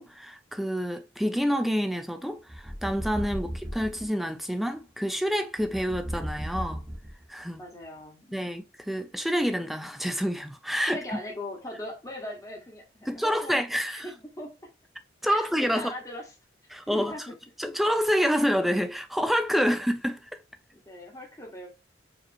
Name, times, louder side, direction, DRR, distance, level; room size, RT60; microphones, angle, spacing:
voice 1, 0.0-6.8 7.3-7.6 8.3-11.0 13.1-14.1 15.2-15.9 16.7-17.1 17.6-20.2, equal, ahead, 0.4 m, -27 dB
sound 1, 2.5-4.1 5.6-7.4, equal, 15° right, 1.1 m, -36 dB
voice 2, 7.6-8.4 10.8-13.6 13.8-14.5 15.3-16.3 16.9-17.3 20.7-21.7, left 1 dB, 20° left, 1.2 m, -40 dB
5.0 x 2.9 x 2.6 m
head